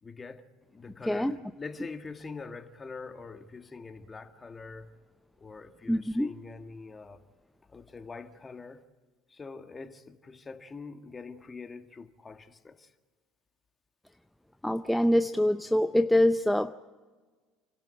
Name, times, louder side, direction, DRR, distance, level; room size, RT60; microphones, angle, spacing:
voice 1, 0.0-4.9 5.4-7.2 7.7-8.8 9.3-12.9, left 4 dB, 25° left, 1.6 m, -44 dB
voice 2, 1.1-1.4 5.9-6.3 14.6-16.7, left 1 dB, 5° left, 0.6 m, -24 dB
29.0 x 12.5 x 8.9 m
supercardioid pair, 90°, 0 cm